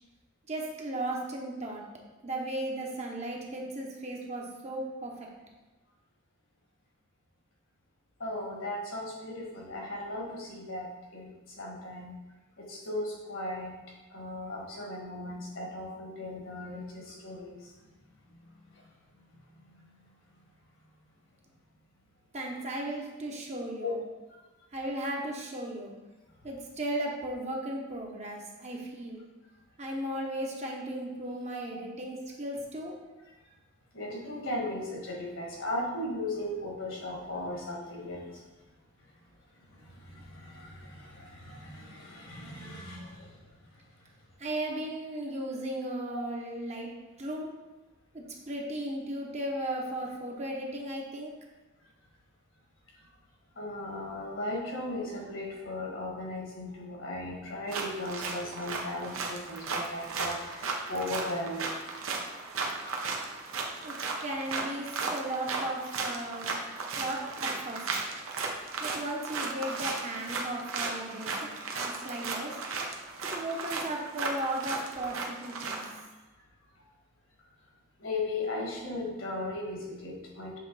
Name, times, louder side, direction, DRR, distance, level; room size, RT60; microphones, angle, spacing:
voice 1, 0.5-1.8 2.2-5.1 22.3-24.0 24.7-25.9 26.4-29.2 29.8-33.0 44.4-46.9 47.2-47.5 48.1-51.3 63.8-63.9 64.2-66.6 66.9-67.8 68.8-72.5 73.3-75.8, right 1 dB, 35° right, -1 dB, 0.9 m, -36 dB
voice 2, 8.2-11.3 11.6-12.2 12.6-13.8 14.1-17.7 18.3-18.4 18.7-18.8 23.8-23.9 33.9-38.4 39.7-43.4 46.1-46.3 53.5-61.7 78.0-80.6, left 1 dB, 65° left, -2 dB, 1.6 m, -37 dB
sound 1, 57.7-76.0, right 4 dB, 80° right, 0.8 m, -35 dB
7.5 x 3.2 x 4.0 m, 1.1 s
head